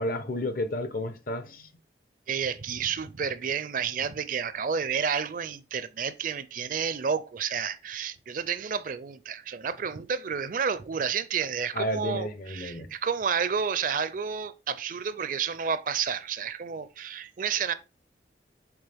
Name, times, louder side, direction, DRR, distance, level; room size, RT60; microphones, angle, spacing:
voice 1, 0.0-1.7 11.7-12.9, left 1 dB, 55° left, 0.8 m, -31 dB
voice 2, 2.3-17.7, right 6 dB, 50° right, 0.4 m, -30 dB
8.0 x 3.6 x 3.4 m
head